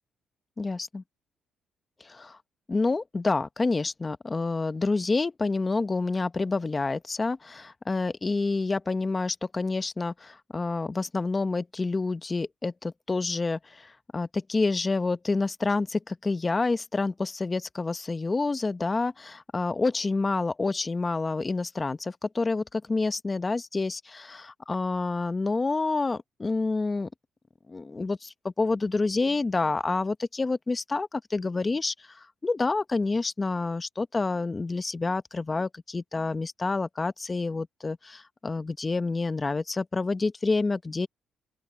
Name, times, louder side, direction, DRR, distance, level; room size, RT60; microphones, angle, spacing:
voice 1, 0.6-1.0 2.0-2.4 2.7-27.1 27.7-41.1, left 3 dB, 25° left, 1.1 m, -28 dB
open air
cardioid pair, 90°, 0 cm